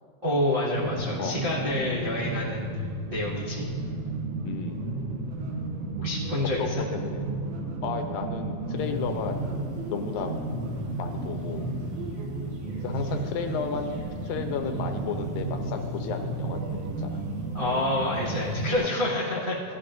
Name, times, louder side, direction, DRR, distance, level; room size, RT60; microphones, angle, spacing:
voice 1, 0.2-3.6 6.0-6.7 17.5-19.5, left 1 dB, 85° right, -8 dB, 0.4 m, -28 dB
sound 1, 0.7-18.8, right 2 dB, 70° right, 2.1 m, -33 dB
voice 2, 1.8-2.1 4.4-4.9 6.6-7.3 7.8-9.5 9.9-10.3 11.0-11.7 12.8-13.9 14.3-17.2 18.7-18.9, left 6 dB, 90° left, 5 dB, 2.5 m, -33 dB
sound 2, 8.7-18.9, left 1 dB, 45° right, 2.1 m, -45 dB
15.5 x 10.0 x 2.5 m, 2.1 s
omnidirectional pair, 4.0 m